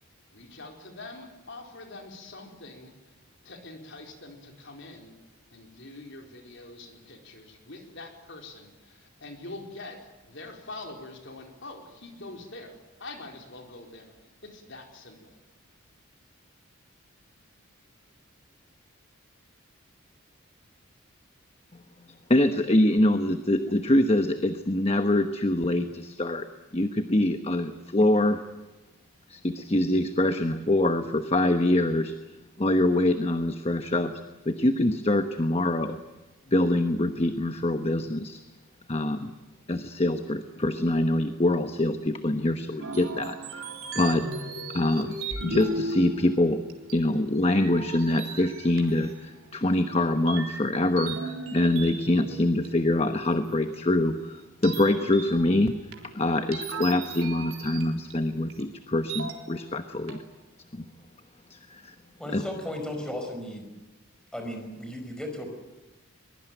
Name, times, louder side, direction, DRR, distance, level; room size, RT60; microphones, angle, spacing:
voice 1, 0.3-3.1 3.4-5.1 5.5-14.1 14.4-15.4, left 2 dB, 60° left, 3 dB, 4.4 m, -44 dB
voice 2, 22.3-26.5 26.7-28.4 29.3-32.1 32.6-36.0 36.5-38.4 38.9-39.3 39.7-43.7 43.9-45.1 45.4-46.6 46.9-60.2 60.7-60.8 61.5-61.9 62.3-62.4, left 1 dB, 30° left, 8 dB, 1.1 m, -25 dB
sound 1, 42.8-47.2 47.5-49.7 50.3-53.3 53.7-53.8 54.6-58.1 58.5-58.6 59.1-59.8 60.1-60.2, right 3 dB, 80° right, 3.8 m, -37 dB
voice 3, 62.2-63.7 64.3-65.5, left 1 dB, 5° left, 4 dB, 5.1 m, -35 dB
23.0 x 21.5 x 9.3 m, 1.1 s
head